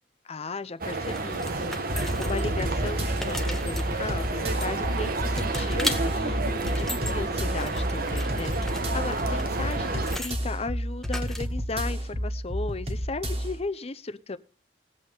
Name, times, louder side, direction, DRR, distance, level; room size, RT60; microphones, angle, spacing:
voice 1, 0.2-14.4, left 3 dB, 35° left, 13 dB, 0.7 m, -36 dB
sound 1, 0.8-10.2, right 2 dB, 55° right, 1.2 m, -30 dB
sound 2, 1.1-2.6 3.0-5.0 5.4-6.0 6.5-7.1 7.5-10.4 11.0-11.7, left 1 dB, ahead, 1.1 m, -37 dB
sound 3, 1.9-13.6, equal, 35° right, 2.1 m, -31 dB
20.5 x 8.1 x 3.6 m, 0.37 s
head